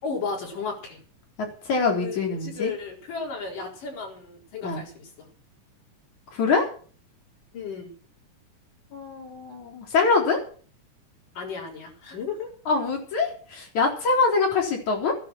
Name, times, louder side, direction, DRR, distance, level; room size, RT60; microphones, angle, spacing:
voice 1, 0.0-1.0 2.0-5.3 7.5-7.9 11.4-12.5, left 5 dB, 85° left, 0 dB, 6.0 m, -34 dB
voice 2, 1.7-2.7 4.6-4.8 6.3-6.7 8.9-10.4 12.7-15.1, left 4 dB, 65° left, 1 dB, 5.2 m, -24 dB
15.0 x 11.0 x 6.2 m, 0.42 s
omnidirectional pair, 3.7 m